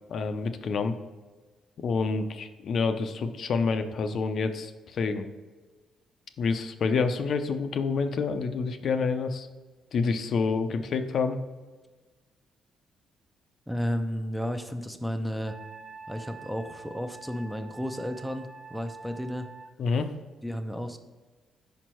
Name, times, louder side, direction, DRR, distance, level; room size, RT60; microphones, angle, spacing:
voice 1, 0.1-0.9 1.8-5.3 6.4-9.5 9.9-11.4 19.8-20.1, left 4 dB, 60° left, 8 dB, 0.5 m, -28 dB
voice 2, 13.7-15.6 16.1-19.5 20.4-21.0, equal, ahead, 7 dB, 0.5 m, -33 dB
Wind instrument woodwind instrument, 15.4-19.7, right 4 dB, 40° right, 0.7 m, -46 dB
5.1 x 4.5 x 4.4 m, 1.3 s
cardioid pair, 90°, 0 cm